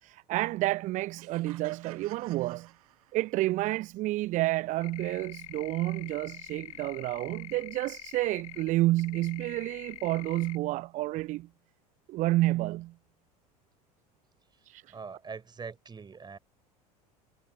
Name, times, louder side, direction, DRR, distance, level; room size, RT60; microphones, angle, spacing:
voice 1, 0.0-2.7 3.1-11.5 12.1-12.9 14.6-15.0, right 18 dB, 40° right, 0.5 m, -30 dB
sound 1, 1.2-3.5, right 17 dB, 65° right, 1.7 m, -53 dB
sound 2, 4.8-8.7 9.0-10.6, left 19 dB, 60° left, 0.8 m, -45 dB
voice 2, 14.9-16.4, right 5 dB, 20° right, 4.9 m, -42 dB
figure-of-eight pair, 70°, 20 cm